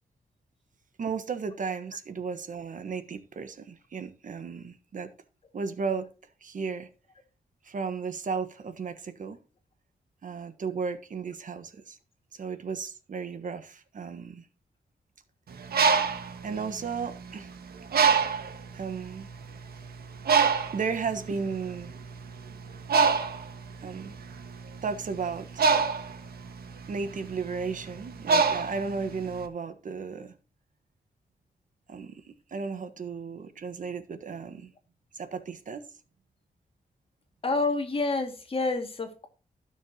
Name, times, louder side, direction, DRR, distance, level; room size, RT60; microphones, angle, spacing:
voice 1, 1.0-5.1 5.5-6.1 6.4-6.9 7.6-9.4 10.2-12.0 12.3-14.4 16.4-17.5 18.7-19.3 20.7-21.9 23.8-24.1 24.8-25.7 26.9-30.3 31.9-34.7 35.1-35.8, right 5 dB, 55° right, 1.3 m, -34 dB
Bird, 15.5-17.4 17.9-18.6 19.3-19.4 19.7-29.4, right 5 dB, 85° right, 1.6 m, -25 dB
voice 2, 37.4-39.3, left 3 dB, 35° left, 2.2 m, -28 dB
16.0 x 6.4 x 2.9 m
wide cardioid pair, 130°, 15 cm